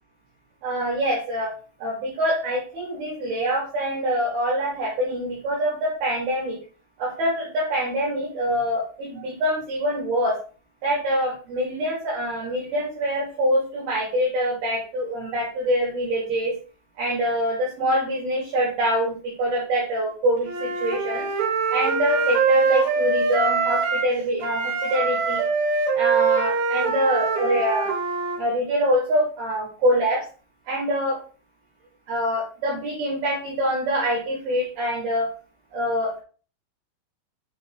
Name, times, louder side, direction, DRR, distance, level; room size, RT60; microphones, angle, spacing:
voice 1, 0.6-1.5 1.8-6.6 7.0-10.4 10.8-16.5 17.0-21.3 21.7-25.5 25.9-27.9 28.4-30.2 30.7-31.2 32.1-35.3 35.7-36.2, equal, 60° right, -4 dB, 4.2 m, -25 dB
Wind instrument woodwind instrument, 20.4-24.1 24.4-28.4, right 5 dB, 75° right, 3.4 m, -23 dB
7.4 x 5.8 x 3.9 m, 0.38 s
omnidirectional pair, 5.4 m